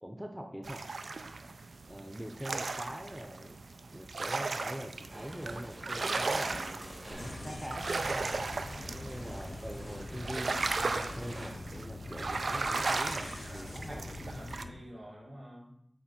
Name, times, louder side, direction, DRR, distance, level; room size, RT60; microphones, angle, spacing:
voice 1, 0.0-0.8 1.9-3.6 3.9-6.5 7.1-8.2 8.9-14.1, equal, 10° right, 3 dB, 0.6 m, -43 dB
sound 1, 0.6-14.6, right 3 dB, 85° right, 0.3 m, -36 dB
sound 2, 5.1-11.5, right 1 dB, 50° right, 2.0 m, -47 dB
sound 3, 7.1-14.7, left 2 dB, 75° left, 0.5 m, -44 dB
voice 2, 8.7-9.2 13.0-15.8, equal, 65° right, -5 dB, 2.2 m, -49 dB
7.1 x 3.1 x 4.3 m, 0.76 s
wide cardioid pair, 45°, 0 cm